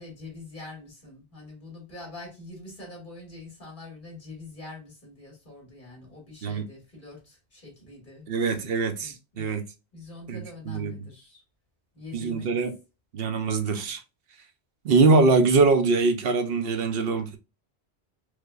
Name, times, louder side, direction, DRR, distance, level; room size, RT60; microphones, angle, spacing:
voice 1, 0.0-8.3 9.0-9.5 9.9-11.4 11.9-12.6, left 2 dB, 50° left, 2.2 m, -44 dB
voice 2, 8.3-9.7 10.3-10.9 12.1-12.8 13.1-14.0 14.8-17.4, right 4 dB, 65° right, 0.8 m, -23 dB
4.8 x 2.2 x 2.3 m
omnidirectional pair, 1.1 m